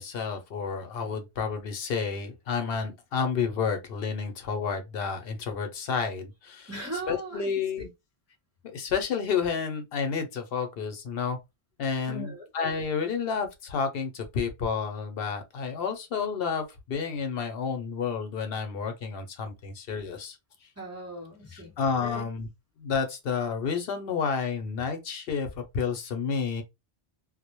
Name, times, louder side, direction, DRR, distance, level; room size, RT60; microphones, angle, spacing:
voice 1, 0.0-6.7 7.1-7.9 8.7-11.4 11.8-20.4 21.5-22.5 22.8-26.6, left 6 dB, 70° left, 0.8 m, -30 dB
voice 2, 6.7-7.5 12.1-12.5 20.8-21.7 22.0-22.3, right 1 dB, 15° right, 0.8 m, -38 dB
2.1 x 2.0 x 2.9 m
omnidirectional pair, 1.0 m